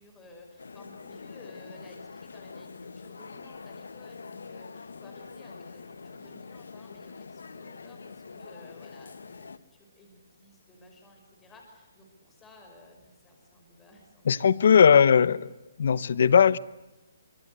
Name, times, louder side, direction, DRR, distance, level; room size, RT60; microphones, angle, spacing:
voice 1, 0.0-14.7, left 2 dB, 10° left, 5.7 m, -54 dB
sound 1, 0.6-9.6, left 4 dB, 90° left, 1.3 m, -45 dB
voice 2, 14.3-15.5 15.8-16.6, left 7 dB, 60° left, 1.0 m, -19 dB
24.5 x 24.5 x 8.1 m
hypercardioid pair, 160°, 0 cm